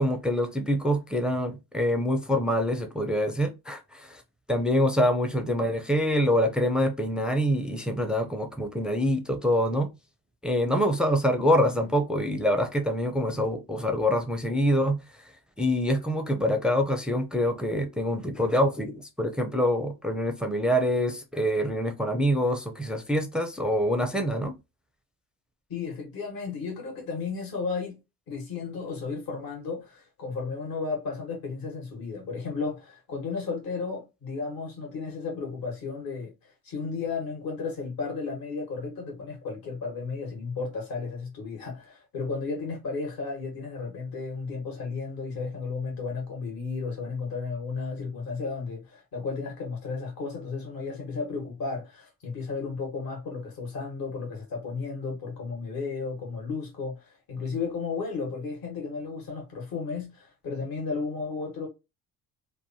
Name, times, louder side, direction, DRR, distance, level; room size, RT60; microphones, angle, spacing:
voice 1, 0.0-4.2 4.5-9.9 10.4-15.0 15.6-24.6, equal, ahead, 0.4 m, -25 dB
voice 2, 25.7-28.0 28.3-61.7, left 4 dB, 55° left, 1.4 m, -34 dB
2.9 x 2.2 x 2.7 m
supercardioid pair, 65°, 42 cm